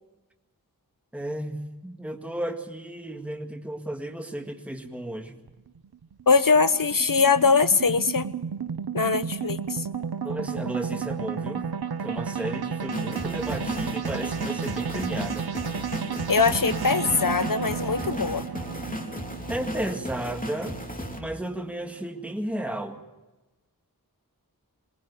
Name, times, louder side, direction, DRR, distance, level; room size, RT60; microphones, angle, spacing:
voice 1, 1.1-5.4 10.2-11.7 12.0-15.5 19.5-20.8 21.1-23.0, right 1 dB, 5° right, 4 dB, 1.8 m, -33 dB
sound 1, 5.5-21.9, right 6 dB, 85° right, 0.7 m, -33 dB
voice 2, 6.3-8.3 8.9-9.9 16.3-18.4, left 4 dB, 60° left, 13 dB, 1.0 m, -22 dB
sound 2, 12.9-21.2, equal, 20° left, 3.0 m, -35 dB
22.0 x 19.5 x 6.8 m, 1.1 s
wide cardioid pair, 45°, 37 cm